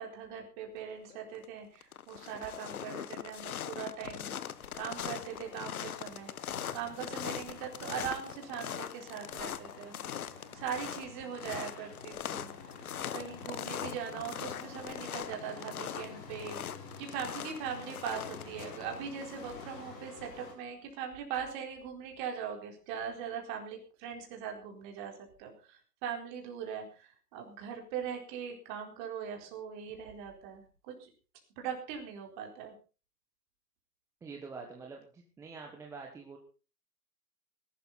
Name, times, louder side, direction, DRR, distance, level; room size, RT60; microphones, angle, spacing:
voice 1, 0.0-4.4 4.7-6.3 6.7-10.0 10.5-12.6 13.1-16.6 17.0-31.1 31.6-32.7, right 7 dB, 30° right, 2 dB, 4.3 m, -40 dB
sound 1, 1.1-1.4 1.8-19.6, left 9 dB, 60° left, 1.3 m, -41 dB
sound 2, 4.2-20.5, left 4 dB, 30° left, 6.7 m, -50 dB
voice 2, 34.2-36.4, right 4 dB, 5° right, 1 dB, 1.3 m, -46 dB
20.0 x 12.0 x 4.1 m, 0.35 s
hypercardioid pair, 150°, 48 cm